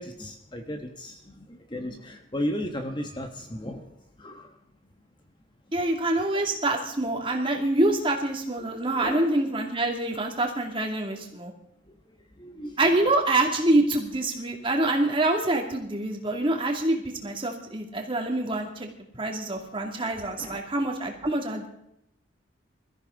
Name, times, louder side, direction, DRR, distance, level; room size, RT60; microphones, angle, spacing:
voice 1, 0.0-4.6 8.6-8.7 8.9-9.4 11.8-13.1 20.4-20.6, left 1 dB, 25° left, 4 dB, 1.1 m, -36 dB
voice 2, 5.7-11.5 12.8-18.9 19.2-21.7, right 2 dB, 25° right, 1 dB, 2.4 m, -26 dB
22.5 x 14.0 x 3.9 m, 0.76 s
head